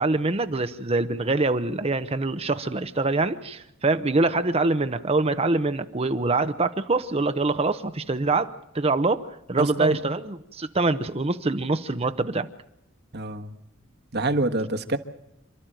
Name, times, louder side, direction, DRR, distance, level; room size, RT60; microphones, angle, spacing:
voice 1, 0.0-12.5, right 3 dB, 30° right, 10 dB, 0.8 m, -24 dB
voice 2, 9.6-10.0 13.1-13.5 14.1-15.0, right 2 dB, 55° right, 8 dB, 1.5 m, -26 dB
28.0 x 12.5 x 9.1 m, 0.82 s
head